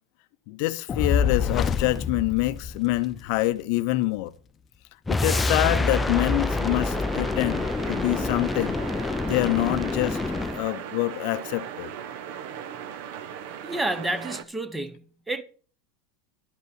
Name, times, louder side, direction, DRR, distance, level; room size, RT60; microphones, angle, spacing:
voice 1, 0.5-4.3 5.1-8.8 9.3-10.2 10.5-11.9, left 18 dB, 65° left, 0.5 m, -26 dB
Fire, 0.9-3.3, left 6 dB, 30° left, 0.8 m, -26 dB
sound 1, 5.1-10.7, left 3 dB, 10° left, 0.4 m, -27 dB
sound 2, 5.2-14.4, right 9 dB, 70° right, 0.8 m, -38 dB
voice 2, 13.6-15.4, right 1 dB, 10° right, 0.8 m, -30 dB
11.5 x 5.5 x 6.1 m
supercardioid pair, 125°, 0 cm